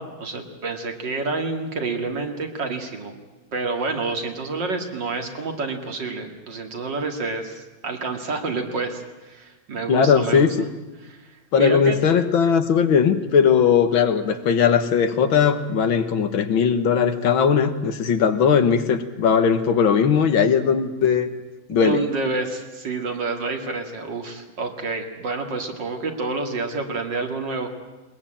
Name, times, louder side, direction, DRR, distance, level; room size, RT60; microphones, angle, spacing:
voice 1, 0.0-3.1 3.5-10.6 11.1-11.2 11.6-12.0 21.7-27.7, right 3 dB, 65° right, 4 dB, 2.9 m, -28 dB
voice 2, 9.9-10.5 11.5-21.3 21.7-22.0, left 7 dB, 85° left, 9 dB, 2.1 m, -19 dB
21.0 x 21.0 x 8.8 m, 1.1 s
omnidirectional pair, 2.1 m